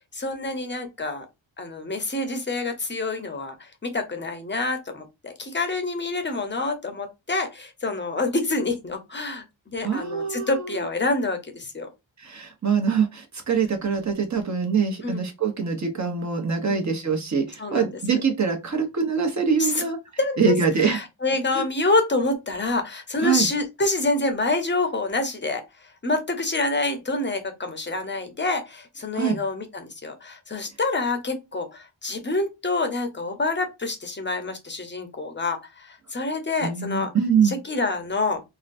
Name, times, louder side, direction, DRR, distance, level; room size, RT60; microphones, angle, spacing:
voice 1, 0.1-1.3 1.6-11.9 15.0-15.2 16.7-16.8 17.6-18.2 19.6-19.8 20.2-20.5 20.8-25.6 26.0-37.1 37.4-38.4, left 3 dB, 25° left, 0.7 m, -27 dB
voice 2, 9.8-10.8 12.2-20.0 20.4-21.0 21.5-21.6 23.2-23.5 29.1-29.4 36.6-37.5, right 6 dB, 35° right, 0.9 m, -24 dB
3.7 x 2.2 x 2.6 m
wide cardioid pair, 110°, 47 cm